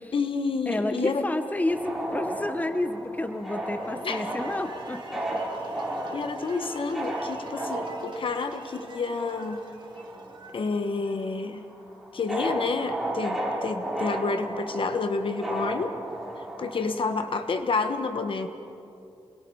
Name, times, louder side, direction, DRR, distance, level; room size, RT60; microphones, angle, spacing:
voice 1, 0.1-1.2 4.0-4.3 6.1-9.6 10.5-11.6 12.1-16.0 16.6-18.5, left 4 dB, 60° left, 8 dB, 1.3 m, -29 dB
voice 2, 0.7-5.4 16.9-17.0, left 1 dB, 15° left, 8 dB, 1.1 m, -30 dB
sound 1, 1.7-10.6 10.9-17.4, right 1 dB, ahead, 4.8 m, -34 dB
sound 2, 3.6-11.7, right 3 dB, 50° right, 2.3 m, -46 dB
28.0 x 21.5 x 4.8 m, 2.6 s
wide cardioid pair, 95°, 10 cm